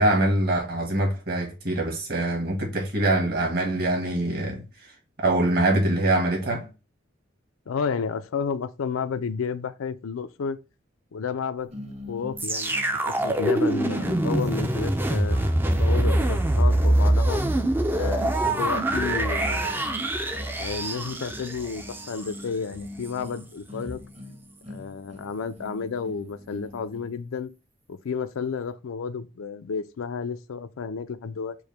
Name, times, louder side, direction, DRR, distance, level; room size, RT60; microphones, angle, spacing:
voice 1, 0.0-4.6 5.2-6.7 15.3-15.4, right 1 dB, 50° right, 1.4 m, -24 dB
voice 2, 7.7-10.6 11.1-11.7 12.1-15.4 15.8-17.4 17.9-19.8 20.6-24.0 24.7-27.5 27.9-31.6, left 5 dB, 85° left, 0.4 m, -31 dB
sound 1, 11.7-27.2, left 1 dB, 30° right, 0.8 m, -43 dB
sound 2, 12.4-22.4 23.0-23.1, right 1 dB, 10° right, 0.3 m, -24 dB
4.6 x 2.1 x 3.2 m
head